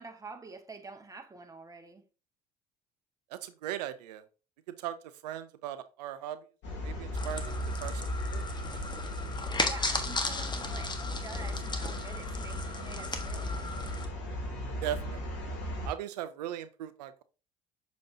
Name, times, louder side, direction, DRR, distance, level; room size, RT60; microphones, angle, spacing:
voice 1, 0.0-2.0 9.6-13.7, right 4 dB, 15° right, 1.4 m, -47 dB
voice 2, 3.3-4.2 4.8-5.0 5.2-6.4 6.8-7.5 7.8-8.0 8.3-8.5 14.8-15.2 15.8-17.2, right 11 dB, 85° right, 0.5 m, -38 dB
sound 1, 6.6-15.9, left 1 dB, 60° left, 2.9 m, -36 dB
sound 2, 7.1-14.1, left 3 dB, 20° left, 1.3 m, -36 dB
6.8 x 5.2 x 2.7 m
hypercardioid pair, 65°, 20 cm